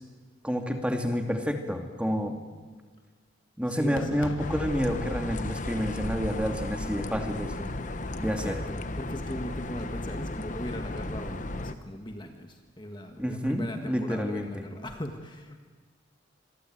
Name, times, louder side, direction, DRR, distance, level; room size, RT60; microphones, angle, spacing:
voice 1, 0.4-2.4 3.6-7.5 8.2-8.6 13.2-14.6, equal, 5° right, 4 dB, 2.4 m, -29 dB
voice 2, 3.7-4.3 8.2-15.6, left 1 dB, 25° left, 4 dB, 1.7 m, -39 dB
Fireworks, 4.0-9.0, left 2 dB, 80° left, 1.3 m, -45 dB
sound 1, 4.4-11.7, left 2 dB, 40° left, 1.2 m, -34 dB
26.5 x 22.0 x 9.3 m, 1.5 s
head